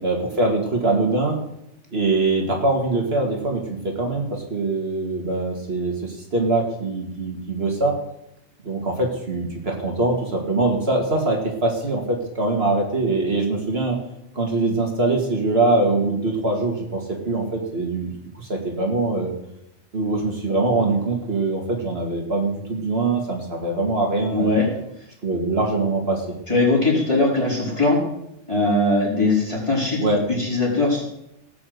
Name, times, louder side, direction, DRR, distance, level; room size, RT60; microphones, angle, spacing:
voice 1, 0.0-1.4 1.9-8.0 8.6-14.0 14.4-18.1 18.4-19.3 19.9-24.6 25.2-26.3 30.0-30.2, right 2 dB, 55° right, 1 dB, 2.5 m, -23 dB
voice 2, 24.3-24.7 26.5-28.0 28.5-30.0 30.4-31.0, left 2 dB, 25° left, -4 dB, 4.9 m, -20 dB
18.0 x 6.1 x 7.9 m, 0.80 s
omnidirectional pair, 1.3 m